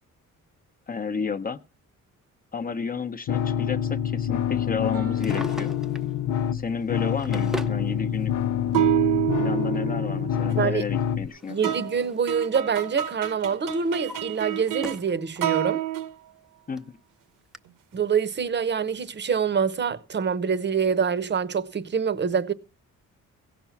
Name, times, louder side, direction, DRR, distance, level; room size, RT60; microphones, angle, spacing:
voice 1, 0.9-1.6 2.5-5.7 6.5-8.3 9.4-11.7 16.7-17.0, left 5 dB, 25° left, 0.9 m, -31 dB
sound 1, 3.3-11.3, left 10 dB, 65° left, 0.6 m, -27 dB
sound 2, 4.9-5.6 8.7-10.7 11.6-15.0 15.4-16.1, right 12 dB, 80° right, 1.1 m, -28 dB
Drawer open or close, 5.0-6.1 6.9-7.8 8.9-9.0 10.8-12.3 12.6-13.0 13.5-15.2 15.6-15.7 16.4-16.5 16.8-16.9 17.5-17.6, right 1 dB, ahead, 0.7 m, -40 dB
voice 2, 11.5-15.8 17.9-22.5, right 6 dB, 35° right, 0.9 m, -25 dB
16.5 x 6.0 x 7.1 m
cardioid pair, 135°, 32 cm